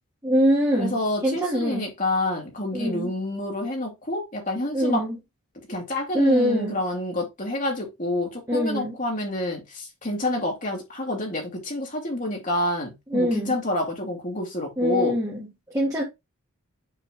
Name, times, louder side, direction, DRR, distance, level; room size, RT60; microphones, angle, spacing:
voice 1, 0.2-1.8 2.7-3.1 4.7-5.2 6.1-6.8 8.5-9.0 13.1-13.6 14.8-15.5 15.7-16.0, equal, 15° right, 1.8 m, -23 dB
voice 2, 0.8-5.0 5.7-15.2, left 1 dB, 35° left, 2.5 m, -28 dB
6.9 x 3.7 x 3.7 m
head